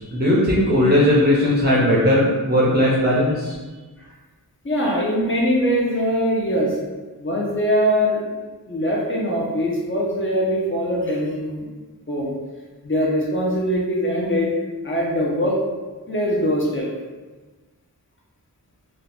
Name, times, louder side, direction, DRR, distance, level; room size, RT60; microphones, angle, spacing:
voice 1, 0.0-3.5, left 1 dB, 25° right, -7 dB, 0.6 m, -18 dB
voice 2, 4.6-6.7 7.2-8.2 8.7-11.7 12.1-12.3 12.8-14.5 14.8-15.6 16.1-16.9, equal, 30° left, -3 dB, 0.8 m, -22 dB
2.7 x 2.4 x 3.5 m, 1.3 s
wide cardioid pair, 65°, 38 cm